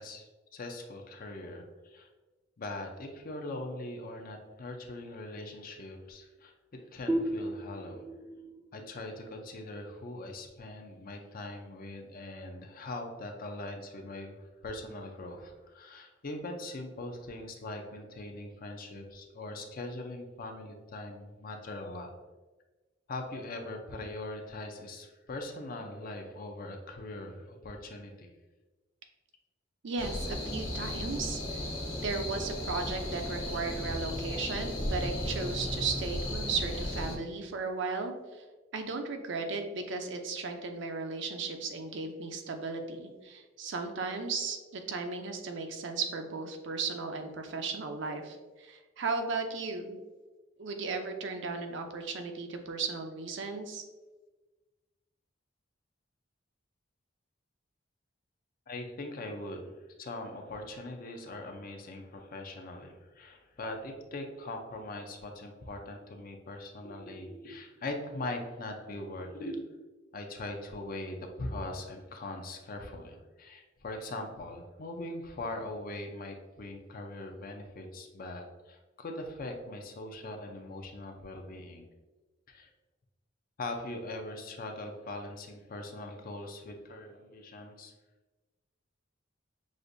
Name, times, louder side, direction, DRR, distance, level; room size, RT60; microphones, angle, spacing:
voice 1, 0.0-2.1 2.6-8.0 8.7-22.1 23.1-28.3 58.7-59.7 60.0-69.7 70.1-81.9 82.5-82.7 83.6-87.9, left 2 dB, 45° left, 4 dB, 0.5 m, -41 dB
sound 1, 7.1-10.5, right 1 dB, 10° right, 0.4 m, -36 dB
voice 2, 29.8-31.4 32.0-38.4 38.7-50.0 50.6-53.8, right 4 dB, 65° right, 5 dB, 0.5 m, -35 dB
sound 2, 30.0-37.2, left 1 dB, 70° left, 1.3 m, -35 dB
6.2 x 2.5 x 2.6 m, 1.2 s
head